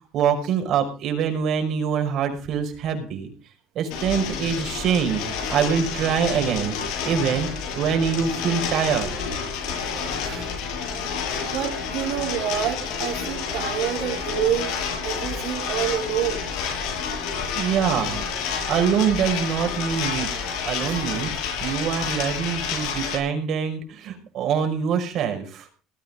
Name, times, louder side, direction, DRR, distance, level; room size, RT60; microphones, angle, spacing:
voice 1, 0.1-3.3 3.8-5.2 5.5-6.8 7.0-7.5 7.8-9.1 17.6-18.2 18.7-20.3 20.7-21.3 21.6-25.6, right 7 dB, 60° right, 5 dB, 5.4 m, -24 dB
sound 1, 3.9-23.2, left 6 dB, 80° left, 7.0 m, -29 dB
voice 2, 9.9-10.5 10.8-11.0 11.5-14.8 15.0-16.5 20.9-21.0, right 10 dB, 75° right, -1 dB, 5.2 m, -28 dB
19.0 x 9.4 x 5.1 m, 0.37 s
cardioid pair, 110°, 0 cm